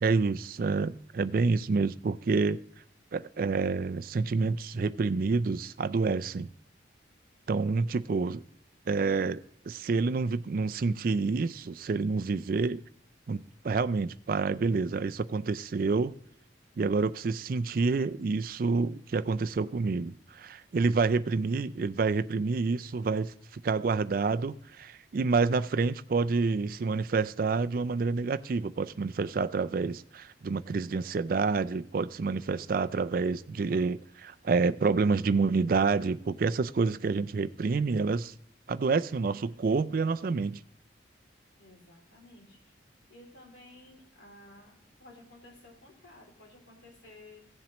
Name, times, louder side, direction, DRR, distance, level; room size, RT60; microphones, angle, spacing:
voice 1, 0.0-2.6 3.1-6.5 7.5-8.4 8.9-12.8 13.3-16.1 16.8-38.3 38.7-40.6, right 4 dB, 50° right, 0.4 m, -28 dB
voice 2, 41.6-42.7 43.1-47.5, left 2 dB, 80° left, 2.9 m, -54 dB
16.0 x 7.3 x 3.0 m
head